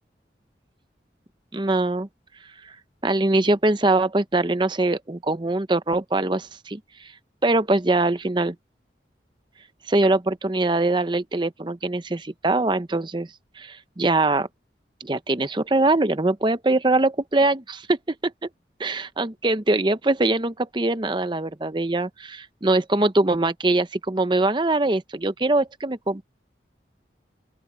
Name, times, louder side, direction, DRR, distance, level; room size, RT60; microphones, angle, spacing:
voice 1, 1.5-2.1 3.0-7.1 7.4-8.6 9.9-13.3 13.6-14.5 15.0-18.0 18.2-18.3 18.8-26.2, right 2 dB, 25° right, 0.8 m, -22 dB
open air
head